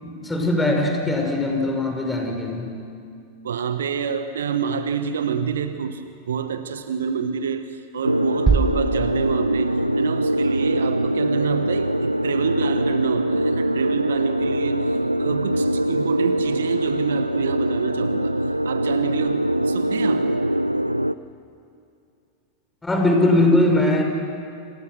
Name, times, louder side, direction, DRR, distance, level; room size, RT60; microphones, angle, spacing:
voice 1, 0.0-2.7 22.8-24.0, left 1 dB, 10° left, 2 dB, 5.4 m, -20 dB
voice 2, 3.4-18.4 18.6-20.3 23.3-23.4, right 6 dB, 65° right, 10 dB, 1.3 m, -27 dB
sound 1, 8.0-21.1, right 1 dB, 85° right, 0.5 m, -23 dB
sound 2, 8.5-10.3, right 4 dB, 15° right, 1.0 m, -24 dB
29.5 x 27.5 x 6.3 m, 2.5 s
figure-of-eight pair, 90°, 0 cm